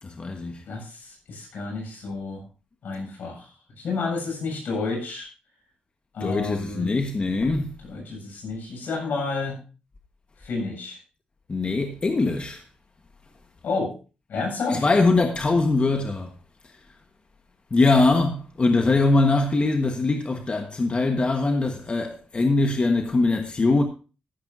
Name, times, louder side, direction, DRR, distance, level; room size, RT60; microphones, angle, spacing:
voice 1, 0.0-0.6 6.2-7.8 11.5-12.6 14.7-16.3 17.7-23.8, left 3 dB, 35° left, 1.4 m, -22 dB
voice 2, 0.7-2.4 2.8-5.3 6.1-6.9 7.9-9.6 10.4-11.0 13.6-13.9 14.3-14.9, left 3 dB, 75° left, 7.4 m, -30 dB
14.0 x 12.0 x 2.7 m
cardioid pair, 80°, 3 cm